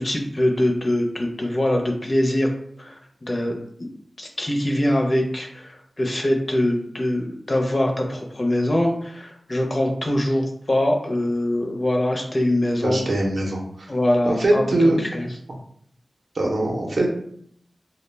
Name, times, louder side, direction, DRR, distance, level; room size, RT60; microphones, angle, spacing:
voice 1, 0.0-2.5 2.8-3.9 4.2-13.0 13.9-14.6 15.1-15.3, left 1 dB, 40° left, 1 dB, 0.5 m, -23 dB
voice 2, 12.8-13.9 14.2-15.0 16.3-17.1, right 1 dB, 65° right, 0 dB, 0.5 m, -21 dB
2.2 x 2.1 x 3.2 m, 0.68 s
wide cardioid pair, 65°, 0 cm